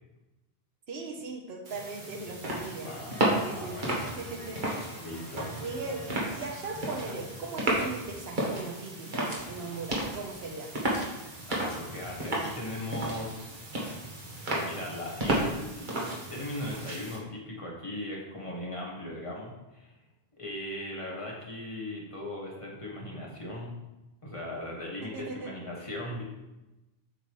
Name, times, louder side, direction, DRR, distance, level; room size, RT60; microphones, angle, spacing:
voice 1, 0.9-2.9 3.4-4.6 5.6-10.7 25.0-25.5, right 3 dB, 80° right, 1 dB, 1.2 m, -39 dB
sound 1, 1.6-17.2, right 1 dB, 50° right, 1.5 m, -33 dB
voice 2, 2.8-4.0 5.0-5.7 6.0-6.1 7.0-7.1 11.5-13.5 14.5-20.0 20.4-23.8 24.2-26.2, left 1 dB, 30° left, -3 dB, 1.7 m, -38 dB
sound 2, 2.9-9.0, equal, 75° left, 1.6 m, -49 dB
7.9 x 5.5 x 3.1 m, 1.0 s
omnidirectional pair, 1.0 m